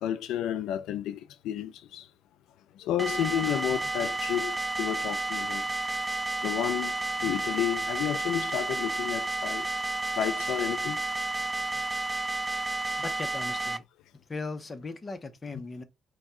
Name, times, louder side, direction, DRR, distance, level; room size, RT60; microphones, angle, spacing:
voice 1, 0.0-2.1 2.8-5.6 6.4-9.7 10.2-11.0 13.0-13.1 15.5-15.6, left 11 dB, 90° left, 0.4 m, -31 dB
sound 1, 3.0-13.8, right 2 dB, 10° right, 0.4 m, -31 dB
voice 2, 13.0-13.8 14.3-15.8, left 3 dB, 30° left, 0.8 m, -38 dB
5.2 x 2.7 x 3.6 m
cardioid pair, 90°, 0 cm